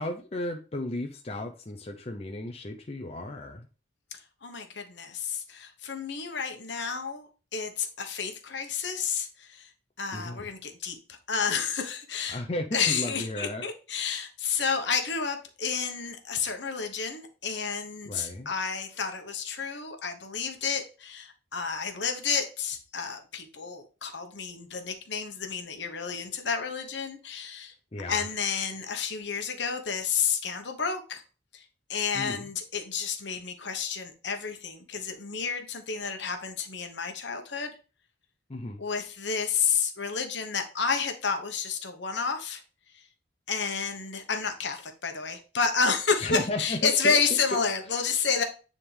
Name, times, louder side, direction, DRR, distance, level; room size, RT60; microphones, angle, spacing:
voice 1, 0.0-3.7 10.1-10.5 12.3-13.6 18.1-18.5 27.9-28.3 32.1-32.5 38.5-38.8 46.2-47.2, left 1 dB, 30° left, 3 dB, 0.6 m, -34 dB
voice 2, 4.4-9.7 10.0-11.0 11.3-12.4 12.7-27.7 28.1-31.2 31.5-31.6 31.9-37.7 38.8-42.6 43.5-48.4, left 5 dB, 60° left, 5 dB, 1.1 m, -30 dB
9.7 x 3.7 x 3.4 m, 0.35 s
head